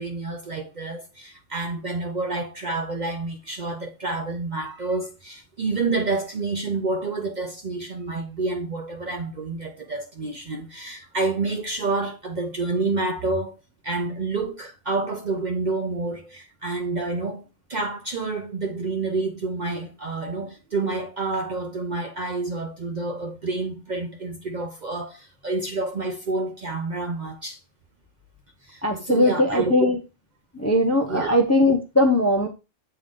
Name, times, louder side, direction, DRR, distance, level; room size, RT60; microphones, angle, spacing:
voice 1, 0.0-17.4 17.7-27.6 28.6-30.0 31.1-31.4, right 3 dB, 45° right, 0.6 m, -28 dB
voice 2, 28.8-30.0 30.6-32.5, left 1 dB, 20° left, 0.5 m, -20 dB
7.1 x 3.8 x 3.7 m
omnidirectional pair, 1.3 m